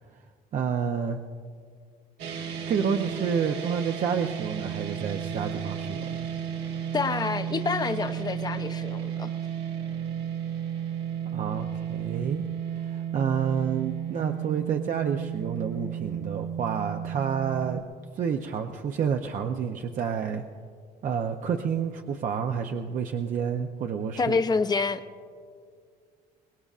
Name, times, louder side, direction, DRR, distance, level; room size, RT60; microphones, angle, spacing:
voice 1, 0.5-1.2 2.7-6.3 11.3-12.4 12.9-17.8 18.2-20.4 21.0-24.4, right 7 dB, 50° right, 4 dB, 0.7 m, -29 dB
sound 1, 2.2-17.8, right 9 dB, 80° right, 1.8 m, -33 dB
voice 2, 6.9-9.3 24.2-25.0, left 4 dB, 25° left, 9 dB, 0.7 m, -27 dB
23.5 x 20.0 x 2.5 m, 2.2 s
cardioid pair, 110°, 17 cm